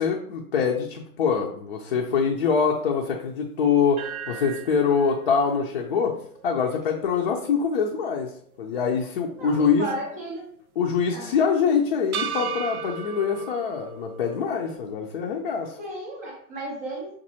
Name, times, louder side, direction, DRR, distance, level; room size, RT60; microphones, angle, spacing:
voice 1, 0.0-8.3 8.6-9.9 10.8-15.8, left 6 dB, 40° left, 0 dB, 0.6 m, -24 dB
sound 1, 4.0-8.2 8.6-8.7 12.1-14.8, right 7 dB, 70° right, 0.6 m, -36 dB
voice 2, 9.4-10.5 11.1-11.4 15.8-17.1, right 1 dB, 10° right, -2 dB, 0.4 m, -34 dB
6.2 x 2.6 x 2.8 m, 0.62 s
hypercardioid pair, 140°, 45 cm